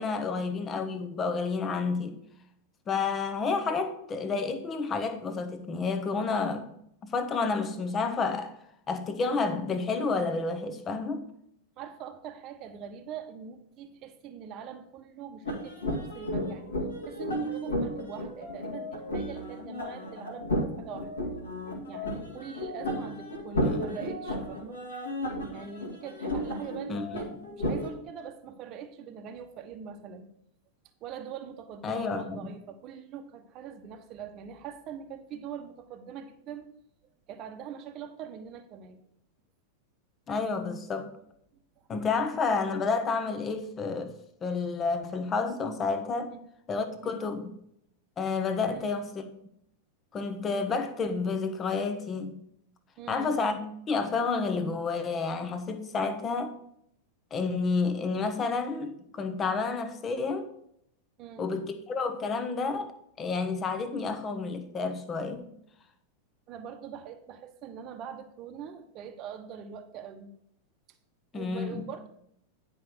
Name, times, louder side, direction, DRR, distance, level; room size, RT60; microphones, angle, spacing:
voice 1, 0.0-2.2 2.9-6.7 7.0-8.5 8.9-11.2 23.6-23.8 26.9-27.4 31.8-32.4 40.3-41.1 41.9-46.3 46.7-47.5 48.2-49.2 50.1-52.4 53.1-53.6 53.9-56.6 57.3-60.5 61.4-62.9 63.2-65.5 71.3-71.8, left 4 dB, 25° left, 1.1 m, -30 dB
voice 2, 11.8-16.7 17.1-21.1 21.9-24.8 25.5-30.3 31.0-36.7 37.3-39.0 41.8-41.9 46.3-46.4 47.0-47.3 48.7-49.0 53.0-53.4 61.2-61.5 66.5-70.3 71.3-72.1, right 7 dB, 35° right, 1.0 m, -43 dB
sound 1, 15.4-27.9, equal, 70° left, 1.9 m, -33 dB
10.5 x 5.3 x 4.6 m
figure-of-eight pair, 90°, 0 cm